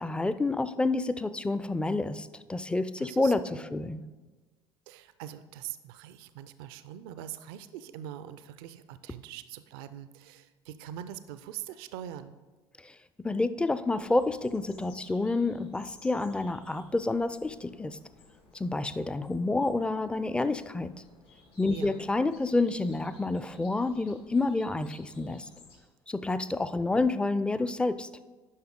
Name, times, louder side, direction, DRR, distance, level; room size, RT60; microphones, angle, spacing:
voice 1, 0.0-4.0 12.8-12.9 13.2-18.0 18.5-21.0 21.6-25.5 26.1-28.1, left 2 dB, 10° left, 13 dB, 0.4 m, -29 dB
voice 2, 3.0-3.7 4.9-12.4 21.7-22.1, right 11 dB, 65° right, 12 dB, 0.4 m, -43 dB
sound 1, 13.9-25.8, left 3 dB, 60° left, 2.9 m, -57 dB
10.5 x 5.7 x 3.7 m, 1.3 s
figure-of-eight pair, 60°, 13 cm